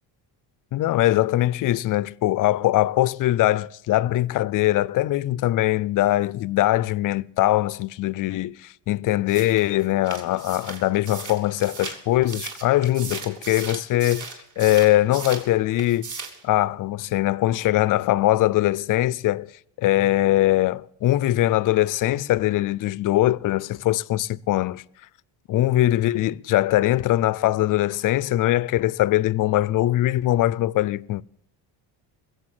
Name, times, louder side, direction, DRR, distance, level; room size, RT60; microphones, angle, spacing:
voice 1, 0.7-16.1 16.4-19.5 19.8-24.8 25.5-31.2, left 15 dB, 50° left, 0.5 m, -22 dB
sound 1, 9.3-15.5 15.8-16.4, right 5 dB, 40° right, 2.9 m, -37 dB
21.5 x 7.9 x 7.6 m
cardioid pair, 155°, 44 cm